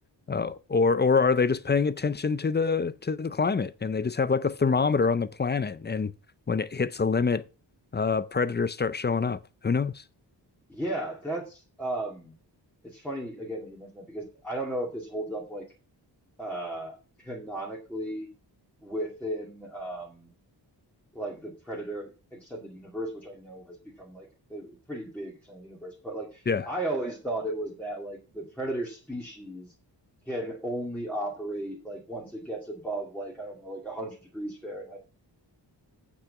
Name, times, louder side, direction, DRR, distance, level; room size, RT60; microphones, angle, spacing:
voice 1, 0.3-6.1 6.5-7.4 7.9-10.0 26.5-26.7, left 5 dB, 25° left, 0.5 m, -25 dB
voice 2, 10.7-12.3 12.8-15.7 16.4-18.3 18.8-20.3 21.1-29.7 30.3-35.0, right 1 dB, 5° left, 2.3 m, -35 dB
8.9 x 6.2 x 5.5 m
wide cardioid pair, 180°, 43 cm